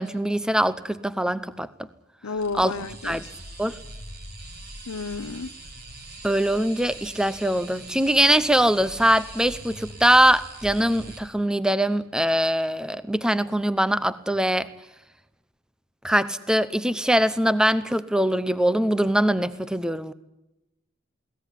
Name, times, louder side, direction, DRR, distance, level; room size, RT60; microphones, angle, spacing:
voice 1, 0.0-1.9 2.5-3.2 3.6-3.8 6.2-14.7 16.0-20.1, right 1 dB, 5° right, 14 dB, 0.8 m, -22 dB
voice 2, 2.2-3.2 4.9-5.5, left 4 dB, 80° left, 12 dB, 0.7 m, -31 dB
sound 1, 2.3-11.2, right 2 dB, 45° right, 5.2 m, -42 dB
22.0 x 18.0 x 10.0 m, 0.94 s
head